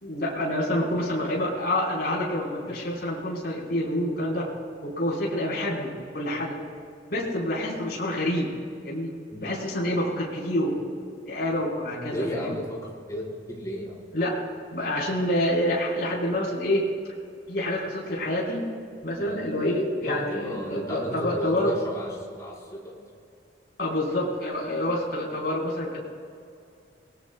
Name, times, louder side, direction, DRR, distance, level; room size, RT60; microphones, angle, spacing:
voice 1, 0.0-4.5 4.8-6.6 7.1-8.5 8.8-9.1 9.4-10.8 11.3-12.5 14.1-14.4 14.7-16.8 17.5-18.7 19.0-21.7 23.8-26.0, left 1 dB, 60° left, -4 dB, 4.9 m, -27 dB
voice 2, 12.1-14.0 19.2-19.4 20.0-23.1, equal, 20° left, -5 dB, 5.1 m, -34 dB
30.0 x 20.0 x 2.4 m, 2.4 s
head